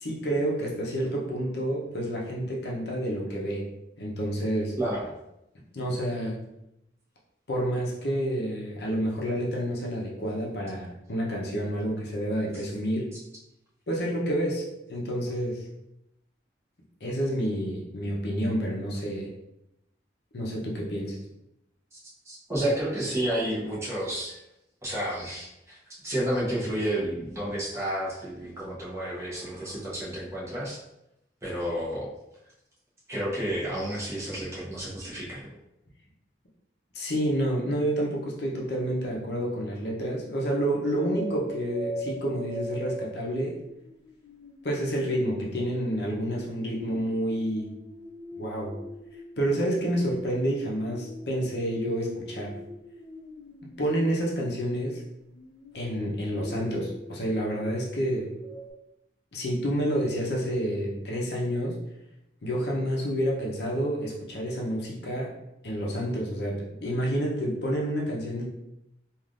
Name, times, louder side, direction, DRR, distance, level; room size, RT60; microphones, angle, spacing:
voice 1, 0.0-3.7 4.0-4.8 5.7-6.4 7.5-13.1 13.9-15.6 17.0-19.3 20.3-21.2 36.9-43.6 44.6-47.7 48.4-48.8 49.4-52.6 53.8-55.0 55.7-58.3 59.3-61.8 62.4-65.3 65.6-68.5, equal, 60° left, -3 dB, 0.7 m, -29 dB
voice 2, 4.8-5.1 21.9-22.0 22.2-24.4 24.8-25.8 26.0-30.8 31.4-32.1 33.1-35.5, right 1 dB, 15° right, -8 dB, 0.9 m, -31 dB
sound 1, 41.0-45.2 46.5-53.9 55.3-58.7, right 1 dB, 15° left, 0.9 m, -42 dB
3.3 x 2.5 x 2.5 m, 0.85 s
head